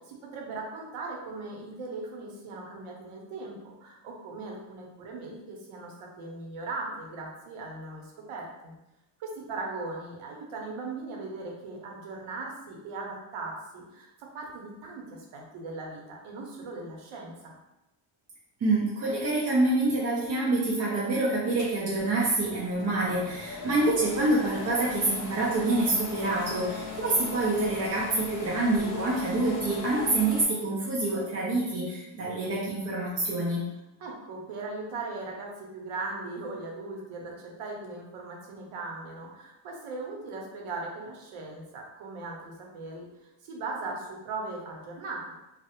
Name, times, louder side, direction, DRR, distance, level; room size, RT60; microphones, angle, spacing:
voice 1, 0.1-8.7 9.2-17.5 34.0-43.1 43.5-45.2, right 3 dB, 75° right, 0 dB, 0.8 m, -39 dB
voice 2, 18.6-33.7, right 2 dB, 35° right, -5 dB, 0.4 m, -26 dB
sound 1, 21.6-30.4, left 5 dB, 35° left, 0.5 m, -40 dB
2.4 x 2.1 x 2.8 m, 0.94 s
cardioid pair, 145°, 50 cm